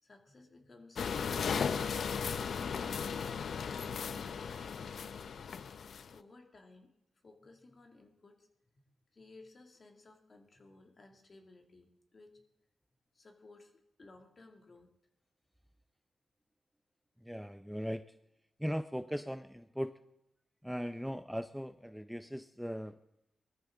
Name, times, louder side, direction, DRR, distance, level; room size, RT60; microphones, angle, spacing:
voice 1, 0.0-2.7 3.4-5.4 5.7-6.9 7.2-8.5 9.1-12.4 13.1-13.7 14.0-14.9, left 2 dB, 45° left, 2 dB, 2.5 m, -58 dB
sound 1, 1.0-6.1, left 6 dB, 75° left, 0.5 m, -36 dB
voice 2, 17.2-18.2 18.6-20.0 20.6-23.0, equal, ahead, 10 dB, 0.5 m, -39 dB
20.5 x 14.0 x 3.8 m, 0.83 s
cardioid pair, 80°, 0 cm